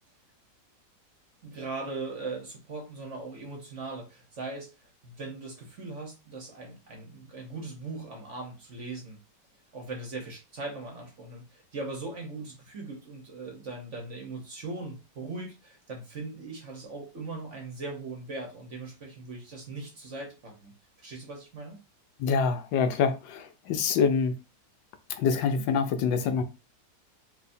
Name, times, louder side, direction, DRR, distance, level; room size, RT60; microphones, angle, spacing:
voice 1, 1.4-4.7 5.0-9.2 9.7-20.7 21.0-21.8, right 3 dB, 50° right, 1.1 m, -39 dB
voice 2, 22.2-24.4 25.1-26.4, left 6 dB, 80° left, 1.3 m, -26 dB
4.7 x 2.7 x 2.6 m
omnidirectional pair, 2.0 m